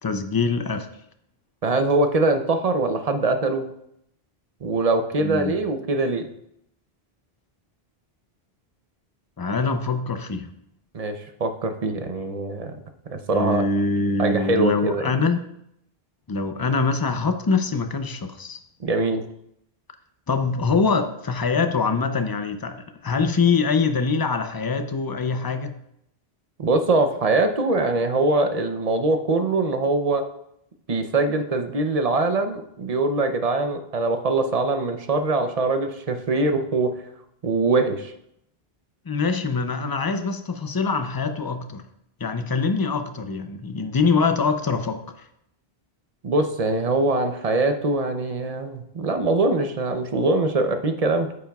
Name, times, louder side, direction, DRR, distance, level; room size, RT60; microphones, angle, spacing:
voice 1, 0.0-0.9 5.2-5.5 9.4-10.5 13.3-15.5 16.3-18.6 20.3-25.8 39.1-41.8 42.2-45.3, left 4 dB, 30° left, 8 dB, 0.4 m, -24 dB
voice 2, 1.6-3.7 4.6-6.3 10.9-12.7 13.1-13.6 14.2-15.0 18.8-19.2 26.6-30.2 30.9-36.9 37.4-38.1 46.2-51.4, right 2 dB, 40° right, 7 dB, 0.7 m, -23 dB
8.7 x 8.4 x 2.3 m, 0.76 s
omnidirectional pair, 1.1 m